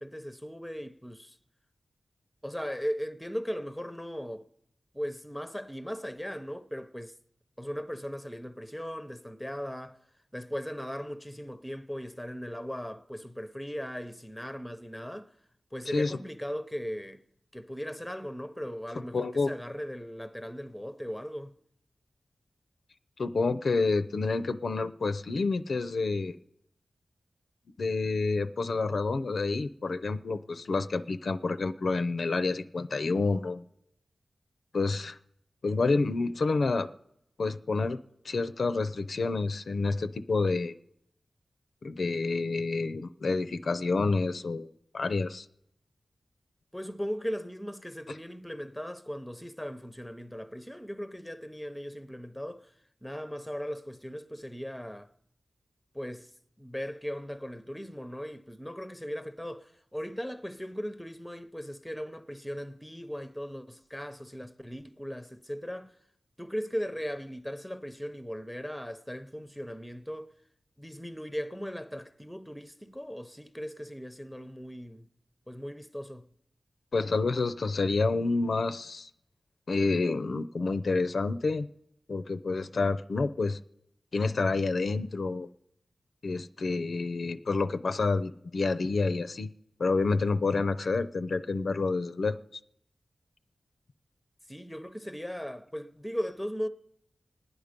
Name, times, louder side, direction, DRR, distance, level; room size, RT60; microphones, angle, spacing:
voice 1, 0.0-1.4 2.4-4.5 4.9-7.1 7.6-10.0 10.3-15.3 15.7-17.2 17.5-21.5 46.7-52.7 53.0-55.1 55.9-56.3 56.6-65.9 66.4-70.3 70.8-75.1 75.5-76.3 94.5-96.7, equal, 5° left, 0.7 m, -38 dB
voice 2, 19.1-19.5 23.2-26.4 27.8-33.6 34.7-35.2 35.6-36.9 37.4-38.0 38.2-40.7 41.8-45.5 76.9-79.1 79.7-81.7 82.1-83.6 84.1-85.5 86.2-89.5 89.8-92.4, left 3 dB, 60° left, 0.5 m, -28 dB
26.0 x 9.6 x 5.1 m
wide cardioid pair, 105°, 0 cm